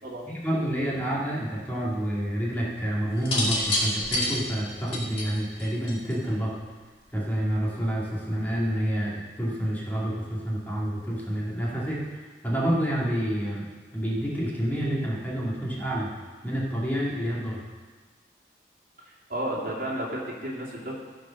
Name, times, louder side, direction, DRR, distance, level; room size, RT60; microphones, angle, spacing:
voice 1, 0.3-6.6 7.1-13.7 13.9-16.2 16.4-17.6, equal, 10° left, -5 dB, 2.3 m, -28 dB
sound 1, 3.2-6.3 7.4-7.8, left 1 dB, 35° left, 2.6 m, -28 dB
voice 2, 19.0-20.9, right 1 dB, 50° right, -4 dB, 2.8 m, -32 dB
15.0 x 5.1 x 6.4 m, 1.4 s
head